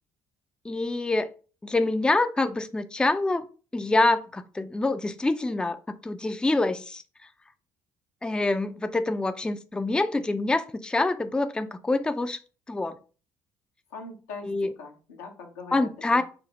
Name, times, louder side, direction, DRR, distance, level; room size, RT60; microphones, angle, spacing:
voice 1, 0.6-1.3 1.6-3.4 3.7-7.0 8.2-12.4 12.7-13.0 14.4-14.7 15.7-16.2, left 2 dB, 10° left, 9 dB, 0.4 m, -26 dB
voice 2, 13.9-16.2, left 4 dB, 90° left, 1 dB, 0.9 m, -42 dB
5.0 x 2.0 x 2.9 m, 0.36 s
hypercardioid pair, 60°, 9 cm